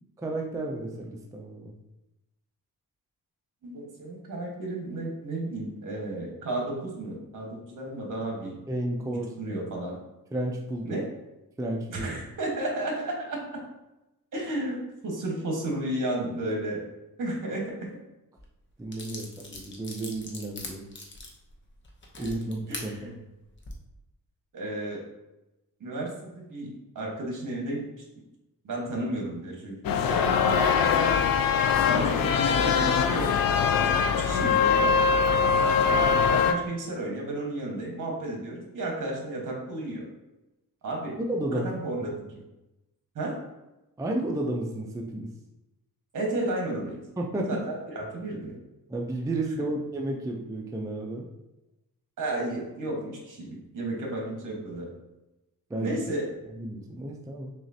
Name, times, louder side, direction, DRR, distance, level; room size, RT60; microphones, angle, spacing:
voice 1, 0.2-1.7 8.7-9.6 10.3-11.0 11.6-12.1 18.8-20.9 22.2-23.2 41.2-41.7 44.0-45.3 47.2-47.6 48.9-51.3 54.5-54.6 55.7-55.9 56.5-57.5, right 1 dB, 10° right, 0 dB, 0.4 m, -32 dB
voice 2, 3.6-8.6 9.1-10.0 10.8-11.0 11.9-13.6 14.3-14.8 15.0-16.9 17.2-17.7 22.2-22.3 22.7-23.1 24.5-25.0 25.8-27.8 28.6-30.9 31.9-32.3 32.6-33.4 34.1-35.0 35.6-36.0 36.3-40.0 40.8-41.2 41.5-42.1 43.1-43.3 46.1-47.0 47.5-48.5 52.2-54.9 55.8-56.2, right 1 dB, 60° right, -1 dB, 1.3 m, -33 dB
sound 1, 18.4-18.5 18.9-22.9 23.5-23.7, left 2 dB, 30° left, 0.8 m, -41 dB
sound 2, 29.8-36.5, left 6 dB, 70° left, 0.5 m, -22 dB
6.2 x 2.4 x 2.7 m, 0.97 s
cardioid pair, 115°, 36 cm